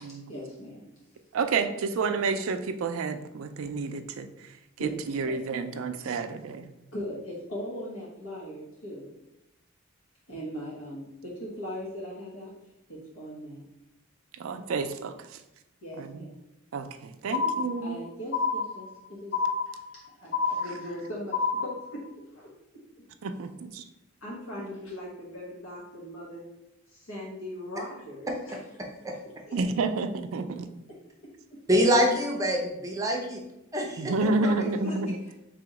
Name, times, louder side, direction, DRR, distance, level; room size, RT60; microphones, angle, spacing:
voice 1, 0.3-0.9 4.8-4.9 5.2-5.3 6.9-9.1 10.3-12.5 12.9-13.7 15.8-16.4 17.3-19.4 19.9-22.0 22.3-22.8 24.2-26.4 26.9-28.6 29.5-29.6 31.5-31.6 33.8-34.2 34.4-35.3, equal, 85° left, -4 dB, 1.1 m, -39 dB
voice 2, 1.3-4.3 4.8-6.6 14.4-15.1 16.0-16.1 16.7-18.0 23.2-23.8 29.5-30.7 34.0-35.1, right 4 dB, 80° right, 8 dB, 0.4 m, -29 dB
sound 1, 17.3-18.0 18.3-19.0 19.3-20.0 20.3-21.0 21.3-22.0, left 4 dB, 60° left, 0.7 m, -28 dB
voice 3, 31.7-33.4 33.7-34.0, equal, 15° right, 0 dB, 0.5 m, -24 dB
3.4 x 3.0 x 4.7 m, 0.88 s
head